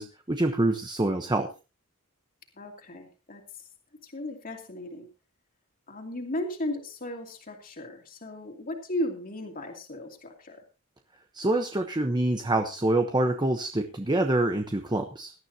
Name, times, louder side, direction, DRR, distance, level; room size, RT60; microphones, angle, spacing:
voice 1, 0.0-1.5 11.3-15.3, right 2 dB, 20° right, 5 dB, 1.0 m, -26 dB
voice 2, 2.6-3.7 4.0-5.1 5.9-10.6, left 1 dB, 40° left, 2 dB, 2.7 m, -36 dB
19.0 x 12.5 x 2.8 m, 0.31 s
head